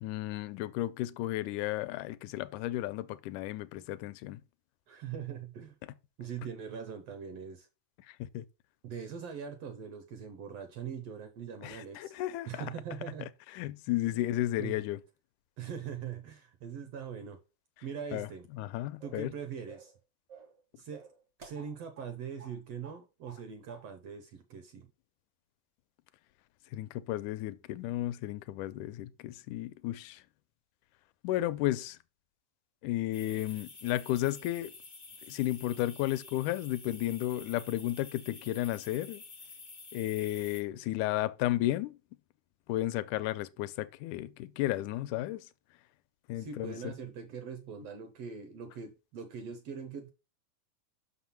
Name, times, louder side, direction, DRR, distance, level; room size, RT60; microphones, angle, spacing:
voice 1, 0.0-4.4 8.1-8.5 11.6-12.7 13.5-15.0 18.1-18.3 18.5-19.3 26.7-30.2 31.2-32.0 32.8-34.7 35.2-39.2 39.9-42.0 42.7-45.5 46.3-46.9, left 15 dB, 80° left, 2.0 m, -33 dB
voice 2, 4.9-5.8 6.2-7.7 8.8-12.1 12.5-13.3 14.1-14.3 14.6-14.9 15.6-17.4 17.8-18.5 19.0-19.9 20.8-21.1 21.4-24.9 46.3-50.1, right 7 dB, 70° right, 1.6 m, -42 dB
sound 1, 19.0-19.3 19.7-20.0 20.3-20.6 20.9-22.1 22.4-22.6 22.8-23.4 23.7-23.9, right 5 dB, 50° right, 0.8 m, -52 dB
sound 2, 33.1-40.6, left 4 dB, 40° left, 0.7 m, -50 dB
6.2 x 5.7 x 5.8 m
omnidirectional pair, 3.6 m